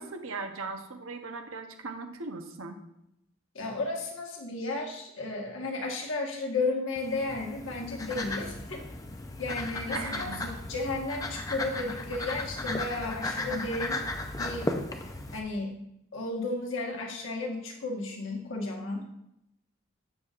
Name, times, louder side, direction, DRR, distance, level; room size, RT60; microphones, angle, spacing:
voice 1, 0.0-2.8 9.9-10.4, right 3 dB, 85° right, 6 dB, 0.9 m, -38 dB
voice 2, 3.5-8.8 9.4-14.0 14.4-14.7 15.3-15.8 16.1-19.1, left 2 dB, 75° left, 0 dB, 1.4 m, -33 dB
sound 1, 7.0-15.4, left 2 dB, 15° left, 0.5 m, -35 dB
8.0 x 7.0 x 2.5 m, 0.81 s
head